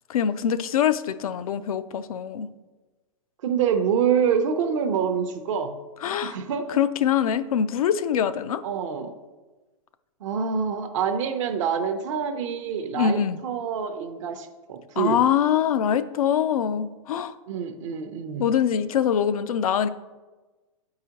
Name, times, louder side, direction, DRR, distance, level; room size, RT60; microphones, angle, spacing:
voice 1, 0.1-2.5 6.0-6.4 6.7-8.6 12.9-13.4 15.0-17.3 18.4-19.9, left 8 dB, 90° left, 12 dB, 0.4 m, -23 dB
voice 2, 3.4-5.8 6.2-6.8 8.6-9.1 10.2-15.2 17.5-18.5, right 7 dB, 65° right, 7 dB, 0.6 m, -26 dB
7.7 x 4.8 x 2.8 m, 1.2 s
hypercardioid pair, 135°, 18 cm